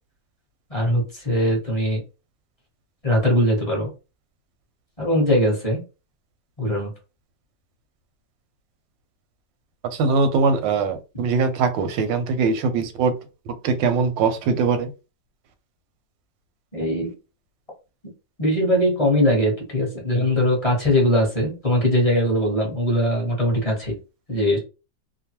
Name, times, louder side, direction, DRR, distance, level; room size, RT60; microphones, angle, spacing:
voice 1, 0.7-2.0 3.0-3.9 5.0-5.8 6.6-6.9 16.7-17.1 18.4-24.0 24.3-24.6, equal, 25° left, 0.8 m, -21 dB
voice 2, 9.9-13.1 13.5-14.9, right 4 dB, 90° right, 1.3 m, -21 dB
2.9 x 2.1 x 2.8 m
omnidirectional pair, 1.9 m